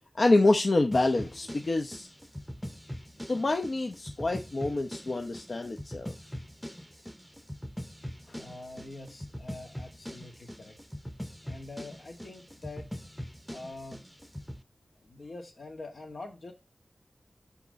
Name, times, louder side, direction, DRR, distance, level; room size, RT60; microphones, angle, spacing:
voice 1, 0.1-2.1 3.3-6.1, left 2 dB, 60° left, 0.7 m, -26 dB
sound 1, 0.9-14.6, equal, ahead, 0.7 m, -42 dB
voice 2, 8.2-10.8 11.4-13.2 13.5-14.0 15.0-16.5, left 2 dB, 80° left, 1.9 m, -45 dB
6.0 x 5.9 x 4.0 m
wide cardioid pair, 65°, 0 cm